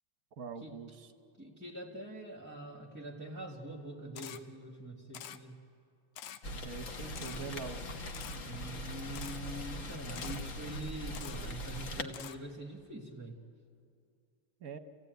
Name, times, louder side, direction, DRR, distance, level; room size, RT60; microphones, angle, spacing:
voice 1, 0.4-1.1 6.6-7.9 14.6-14.8, right 5 dB, 50° right, 8 dB, 1.2 m, -43 dB
voice 2, 1.4-5.5 8.4-13.4, right 1 dB, 10° right, 0 dB, 1.2 m, -44 dB
Camera, 4.2-4.4 5.1-5.4 6.2-6.4 7.2-7.4 8.1-8.4 9.2-9.4 10.2-10.4 11.1-11.4 12.1-12.4, left 10 dB, 85° left, 1.7 m, -46 dB
Rain, 6.4-12.0, left 1 dB, 45° left, 1.3 m, -41 dB
28.5 x 16.5 x 9.2 m, 2.4 s
omnidirectional pair, 2.3 m